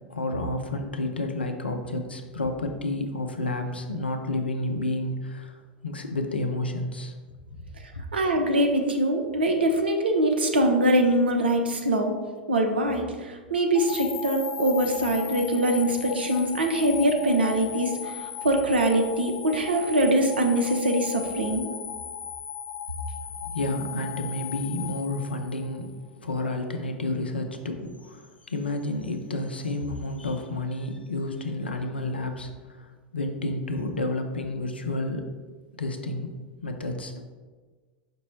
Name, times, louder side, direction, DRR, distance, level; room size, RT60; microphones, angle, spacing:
voice 1, 0.1-5.6 5.8-7.1 7.5-8.0 23.5-25.9 26.2-35.3 35.8-36.3 36.6-37.2, left 2 dB, 90° left, 5 dB, 0.5 m, -30 dB
voice 2, 8.1-12.2 12.5-21.6, right 1 dB, 80° right, 4 dB, 0.6 m, -23 dB
sound 1, 13.7-25.9, left 8 dB, 45° left, 0.7 m, -37 dB
5.2 x 2.0 x 4.3 m, 1.4 s
figure-of-eight pair, 90°, 5 cm